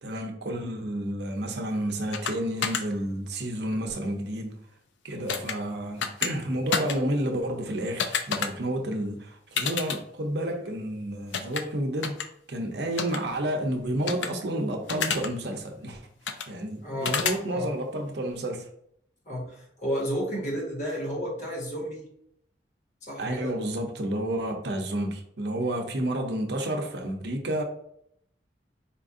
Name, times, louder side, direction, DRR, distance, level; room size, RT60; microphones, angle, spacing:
voice 1, 0.0-4.6 5.0-12.2 12.5-16.0 16.5-18.7 23.2-27.6, right 1 dB, 70° right, 0.7 m, -30 dB
sound 1, 2.1-2.3 2.6-2.8 5.3-5.5 6.0-6.3 6.7-7.0 8.0-8.5 9.6-10.0 11.3-11.6 12.0-12.2 13.0-13.2 14.1-14.3 14.9-15.3 16.3-16.5 17.0-17.4, left 6 dB, 90° left, 0.5 m, -28 dB
voice 2, 16.8-17.7 19.2-22.0 23.0-23.6, equal, 40° left, 1.4 m, -32 dB
4.4 x 2.6 x 3.6 m
head